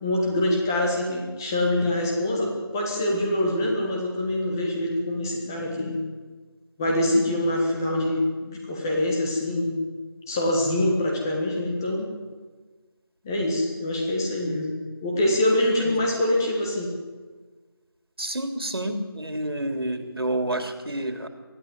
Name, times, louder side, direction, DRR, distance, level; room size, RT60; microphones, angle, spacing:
voice 1, 0.0-6.0 6.8-9.8 10.3-12.1 13.2-14.7 15.0-16.9, left 1 dB, 10° left, 0 dB, 1.3 m, -25 dB
voice 2, 18.2-21.3, right 1 dB, 70° right, 6 dB, 3.3 m, -29 dB
22.0 x 13.5 x 9.1 m, 1.4 s
figure-of-eight pair, 170°, 13 cm